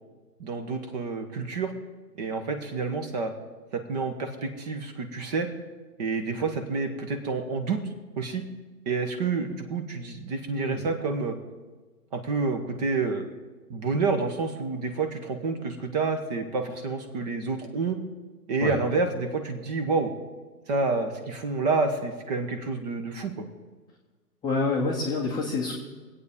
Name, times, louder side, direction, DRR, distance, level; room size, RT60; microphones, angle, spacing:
voice 1, 0.4-1.7 2.2-3.3 3.7-5.5 6.0-7.8 8.2-8.5 8.9-11.4 12.1-13.3 13.7-18.0 18.5-20.1 20.7-23.4, right 4 dB, 25° right, 6 dB, 1.0 m, -28 dB
voice 2, 24.4-25.7, left 3 dB, 10° left, -3 dB, 0.9 m, -27 dB
23.0 x 8.4 x 3.6 m, 1.3 s
hypercardioid pair, 140°, 49 cm